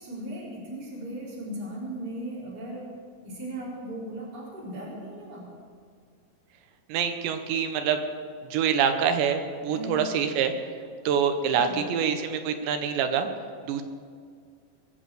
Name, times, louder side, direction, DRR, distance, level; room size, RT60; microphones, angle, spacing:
voice 1, 0.0-2.9 3.2-5.5 9.6-10.0 11.5-11.9, right 1 dB, 20° right, -5 dB, 4.0 m, -37 dB
voice 2, 6.9-8.0 8.5-10.5 11.1-13.3 13.6-13.8, right 7 dB, 75° right, 7 dB, 3.1 m, -25 dB
21.5 x 7.3 x 7.6 m, 2.1 s
omnidirectional pair, 5.3 m